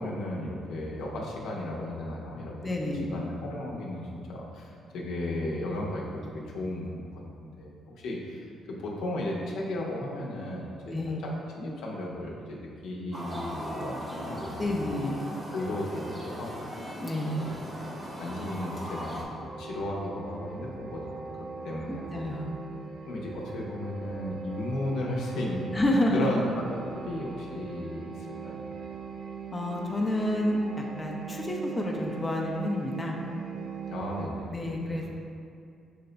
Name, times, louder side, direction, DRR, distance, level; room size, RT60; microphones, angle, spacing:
voice 1, 0.0-2.5 2.8-7.1 7.4-8.4 8.8-12.6 12.8-14.7 15.5-16.6 17.4-17.6 18.1-22.0 23.1-25.7 26.1-26.4 26.7-28.1 28.4-28.6 33.9-34.8, left 1 dB, 80° left, -3 dB, 0.7 m, -35 dB
voice 2, 2.6-3.1 10.9-11.2 14.6-15.3 17.0-17.5 21.9-22.5 25.7-26.4 29.5-33.2 34.5-35.0, left 1 dB, 20° left, -1 dB, 0.5 m, -29 dB
sound 1, 13.1-19.2, equal, 25° right, 0.8 m, -38 dB
sound 2, 19.4-34.3, right 5 dB, 55° right, 0.4 m, -40 dB
5.6 x 2.2 x 3.8 m, 2.4 s
cardioid pair, 90°, 0 cm